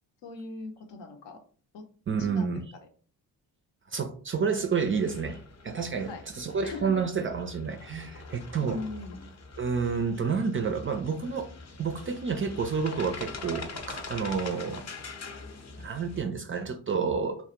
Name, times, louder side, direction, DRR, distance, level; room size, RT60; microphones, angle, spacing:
voice 1, 0.2-1.4 1.7-1.9 2.2-2.6 6.1-6.2 6.6-7.0 8.6-9.3, left 3 dB, 65° left, 4 dB, 0.7 m, -40 dB
voice 2, 2.1-2.6 3.9-5.4 5.6-8.8 9.6-11.5 11.8-14.8 15.8-17.4, right 5 dB, 30° right, 7 dB, 0.3 m, -29 dB
sound 1, 4.8-16.2, left 3 dB, 35° left, 0.7 m, -43 dB
2.3 x 2.1 x 2.9 m, 0.43 s
hypercardioid pair, 45°, 46 cm